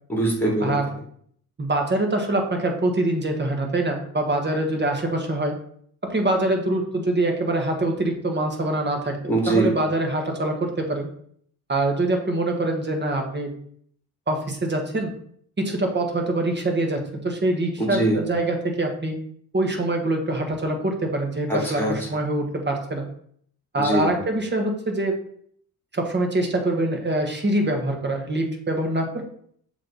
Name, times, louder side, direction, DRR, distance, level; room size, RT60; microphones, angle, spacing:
voice 1, 0.1-0.8 9.3-9.7 17.8-18.2 21.5-21.9 23.8-24.1, right 1 dB, 5° left, -1 dB, 2.4 m, -22 dB
voice 2, 1.6-5.6 6.0-11.1 11.7-13.5 14.3-15.1 15.6-19.1 19.5-23.1 23.7-25.2 25.9-29.2, right 2 dB, 30° right, 3 dB, 1.5 m, -24 dB
7.3 x 3.3 x 4.0 m, 0.62 s
cardioid pair, 80°, 37 cm